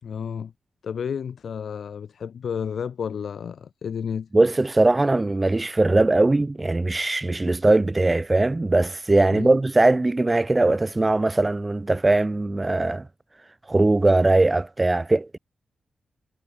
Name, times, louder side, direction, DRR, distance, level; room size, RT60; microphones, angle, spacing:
voice 1, 0.0-0.5 0.8-4.3 9.3-9.6, left 7 dB, 65° left, 4.6 m, -31 dB
voice 2, 4.3-13.0 13.7-15.4, right 2 dB, 20° right, 1.1 m, -20 dB
wide cardioid pair, 145°, 0 cm